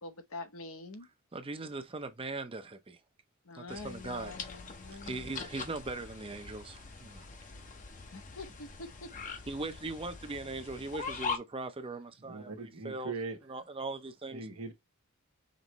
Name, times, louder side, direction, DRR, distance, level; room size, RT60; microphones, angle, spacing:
voice 1, 0.0-1.1 3.4-5.5 8.1-9.1, left 3 dB, 65° left, 0.8 m, -45 dB
voice 2, 1.3-3.0 3.5-4.4 5.0-7.3 9.5-13.1 13.5-14.5, right 3 dB, 25° right, 0.6 m, -40 dB
sound 1, 3.7-11.4, left 5 dB, 35° left, 0.8 m, -42 dB
voice 3, 12.2-13.4 14.3-14.7, right 3 dB, 85° right, 1.2 m, -40 dB
5.3 x 3.1 x 3.0 m
head